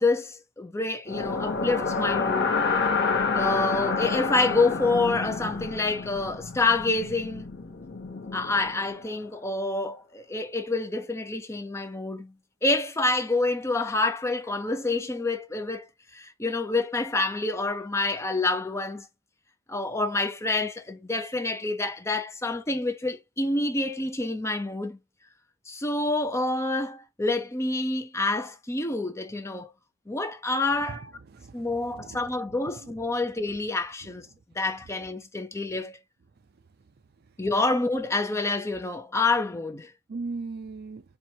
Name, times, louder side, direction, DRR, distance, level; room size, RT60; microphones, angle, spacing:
voice 1, 0.0-2.6 3.3-7.5 8.3-12.3 12.6-19.1 19.7-25.0 25.7-29.7 30.1-31.0 31.5-34.2 34.6-36.0 37.4-39.9, left 2 dB, 15° left, 0.6 m, -27 dB
sound 1, 1.1-9.1, left 4 dB, 55° left, 0.8 m, -29 dB
voice 2, 30.8-32.2 32.8-32.9 40.1-41.0, right 4 dB, 50° right, 0.5 m, -38 dB
4.5 x 2.7 x 2.7 m
head